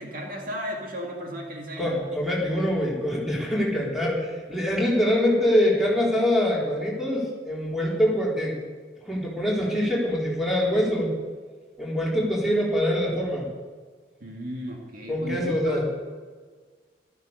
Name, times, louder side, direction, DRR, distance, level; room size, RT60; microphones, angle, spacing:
voice 1, 0.0-2.1 14.2-15.9, equal, 55° right, 0 dB, 2.2 m, -34 dB
voice 2, 1.8-8.5 9.0-11.1 11.8-13.5 15.1-15.8, equal, ahead, -5 dB, 3.8 m, -24 dB
13.0 x 13.0 x 6.6 m, 1.5 s
head